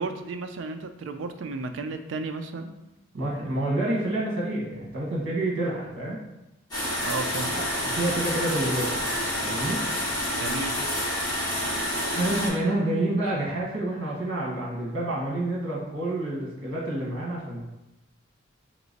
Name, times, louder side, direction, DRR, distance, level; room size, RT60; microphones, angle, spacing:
voice 1, 0.0-2.7 7.0-7.5 10.3-10.7, right 3 dB, 65° right, 7 dB, 0.3 m, -33 dB
voice 2, 3.1-6.2 7.5-9.1 9.5-9.8 12.1-17.6, right 1 dB, 85° right, -4 dB, 1.4 m, -28 dB
sound 1, 6.7-12.5, equal, 20° left, 1.1 m, -28 dB
3.2 x 3.0 x 4.0 m, 0.94 s
head